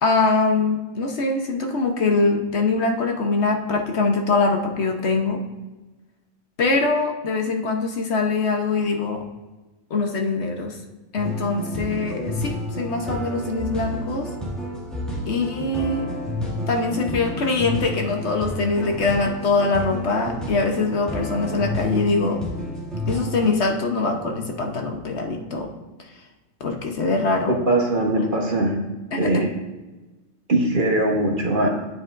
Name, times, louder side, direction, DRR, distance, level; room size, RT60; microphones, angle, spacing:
voice 1, 0.0-5.4 6.6-9.2 9.9-10.8 11.1-14.3 15.3-16.1 16.7-22.4 23.1-25.7 26.6-27.6 28.2-28.3 29.1-29.3, left 3 dB, 60° left, 3 dB, 1.2 m, -23 dB
sound 1, 11.2-23.5, left 1 dB, ahead, 2.1 m, -30 dB
voice 2, 27.7-28.7 29.2-29.5 30.5-31.7, right 2 dB, 45° right, 0 dB, 1.2 m, -20 dB
11.0 x 9.2 x 2.5 m, 1.2 s
omnidirectional pair, 1.3 m